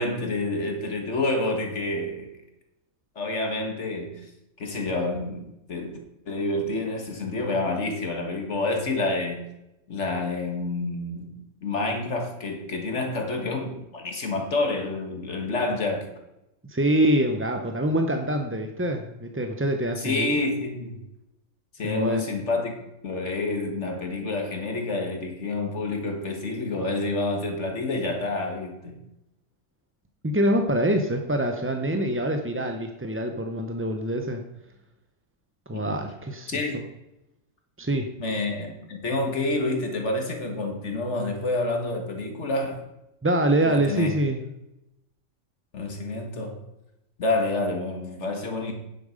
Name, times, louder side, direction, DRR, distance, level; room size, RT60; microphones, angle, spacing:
voice 1, 0.0-2.3 3.1-4.3 4.6-6.0 6.3-9.4 9.9-11.3 11.6-16.1 20.0-21.0 21.8-22.7 23.0-29.0 35.7-36.0 36.5-36.8 38.2-42.8 43.6-44.1 45.7-46.6 47.2-48.7, left 2 dB, 60° left, 1.9 m, -28 dB
voice 2, 16.7-20.3 21.8-22.2 30.2-34.4 35.7-36.8 37.8-38.1 43.2-44.4, right 1 dB, 15° right, 0.4 m, -25 dB
9.6 x 7.4 x 5.1 m
omnidirectional pair, 1.4 m